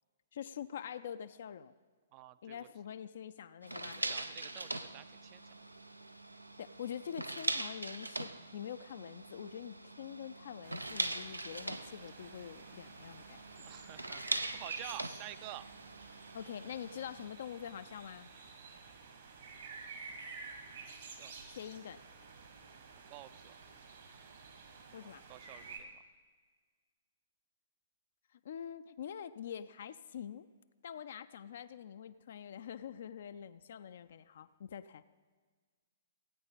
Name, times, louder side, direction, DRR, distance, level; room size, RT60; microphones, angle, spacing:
voice 1, 0.3-1.7 2.4-4.0 6.6-13.7 16.3-18.3 21.5-22.0 24.9-25.2 28.3-30.5 30.8-35.0, left 9 dB, 55° left, 12 dB, 0.4 m, -45 dB
voice 2, 2.1-2.7 3.9-5.6 13.7-15.7 21.0-21.3 23.1-23.6 24.9-25.9, right 15 dB, 30° right, 15 dB, 0.4 m, -50 dB
sound 1, 3.6-17.3, right 2 dB, 85° right, 0.5 m, -42 dB
sound 2, 10.6-25.8, right 4 dB, 60° right, 1.8 m, -51 dB
16.5 x 8.9 x 4.0 m, 1.5 s
figure-of-eight pair, 115°, 0 cm